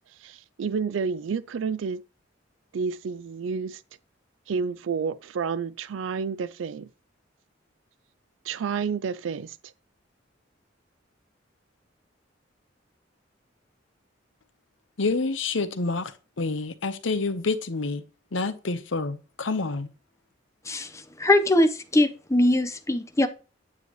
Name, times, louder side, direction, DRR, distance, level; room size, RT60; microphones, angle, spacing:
voice 1, 0.1-2.0 2.7-3.8 4.5-6.9 8.4-9.7, right 5 dB, 90° right, 0.4 m, -30 dB
voice 2, 15.0-18.0 18.3-19.9, left 3 dB, 85° left, 0.9 m, -28 dB
voice 3, 20.7-23.3, left 1 dB, 15° left, 0.8 m, -22 dB
9.4 x 8.0 x 3.0 m
head